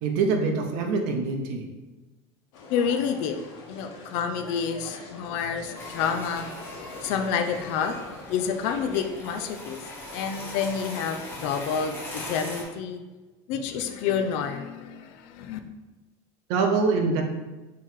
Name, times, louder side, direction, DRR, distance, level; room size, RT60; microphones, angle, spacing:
voice 1, 0.0-1.7 16.5-17.2, right 4 dB, 55° right, 4 dB, 0.6 m, -24 dB
sound 1, 2.5-9.1, left 3 dB, 75° left, 1.2 m, -43 dB
voice 2, 2.7-3.4 3.7-6.5 7.0-7.9 8.3-9.8 10.1-13.0 13.5-15.6, left 7 dB, 45° left, 6 dB, 0.4 m, -29 dB
sound 2, 5.7-12.6, left 1 dB, 15° left, 0.8 m, -40 dB
4.5 x 3.0 x 3.7 m, 1.2 s
cardioid pair, 180°, 14 cm